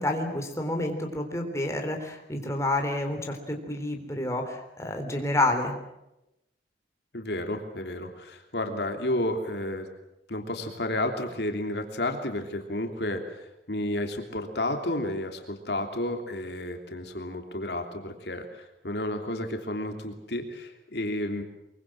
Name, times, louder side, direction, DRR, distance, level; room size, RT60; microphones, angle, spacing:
voice 1, 0.0-5.8, left 1 dB, 15° left, 3 dB, 3.7 m, -29 dB
voice 2, 7.1-9.9 10.3-21.4, left 1 dB, 70° left, 4 dB, 3.1 m, -31 dB
24.0 x 23.5 x 7.7 m, 0.89 s
head